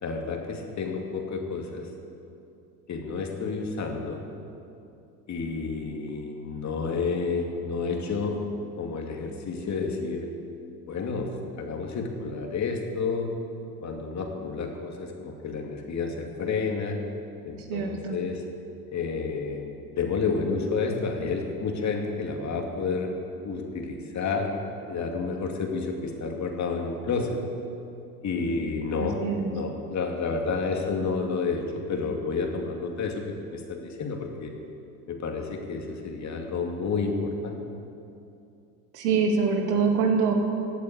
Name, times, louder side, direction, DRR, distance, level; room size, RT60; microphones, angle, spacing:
voice 1, 0.0-1.9 2.9-4.2 5.3-8.4 8.8-10.3 10.9-13.3 13.8-17.0 17.4-18.4 18.9-23.1 23.4-24.5 24.9-27.4 28.2-29.2 29.5-33.2 33.5-34.5 35.1-37.6, left 4 dB, 35° left, 2 dB, 2.5 m, -30 dB
voice 2, 17.7-18.2 29.0-29.5 38.9-40.3, right 5 dB, 70° right, 2 dB, 2.3 m, -24 dB
15.5 x 8.3 x 8.5 m, 2.6 s
hypercardioid pair, 75°, 46 cm